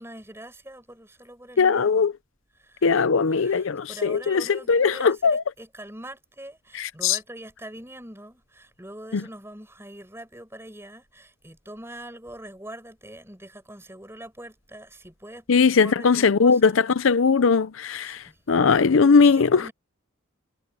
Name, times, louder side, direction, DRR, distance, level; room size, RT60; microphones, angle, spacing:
voice 1, 0.0-2.1 2.6-15.5 15.8-16.8 18.0-18.4 19.1-19.7, right 1 dB, 10° right, 6.6 m, -43 dB
voice 2, 1.6-2.1 2.8-5.4 6.8-7.2 9.1-9.2 15.5-19.6, left 5 dB, 70° left, 0.5 m, -20 dB
head